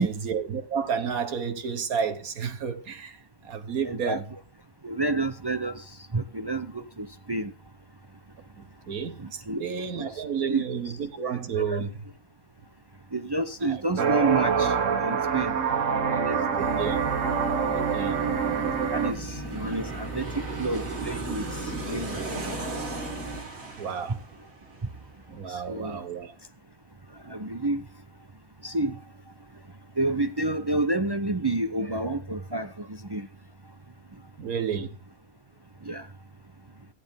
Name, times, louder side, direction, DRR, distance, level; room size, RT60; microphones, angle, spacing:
voice 1, 0.0-3.2 3.4-4.2 8.6-11.9 13.7-13.8 16.5-17.1 17.7-18.2 23.8-24.2 25.3-26.3 34.4-35.0, right 7 dB, 85° right, 1.7 m, -31 dB
voice 2, 3.8-4.4 4.8-5.8 6.1-7.5 9.2-9.6 10.0-10.1 10.4-10.6 11.7-11.8 13.1-14.7 15.0-15.5 15.9-16.4 18.2-18.3 18.9-21.4 21.9-22.5 25.7-26.0 27.3-27.8 28.6-29.0 30.0-33.3 35.9-36.0, right 2 dB, 30° right, 0.4 m, -29 dB
sound 1, 14.0-19.1, right 6 dB, 65° right, 1.4 m, -25 dB
Aircraft, 14.9-25.6 25.9-26.0, right 3 dB, 50° right, 2.3 m, -39 dB
sound 2, 16.6-23.4, right 1 dB, 10° left, 4.0 m, -38 dB
14.5 x 10.5 x 3.6 m
omnidirectional pair, 1.5 m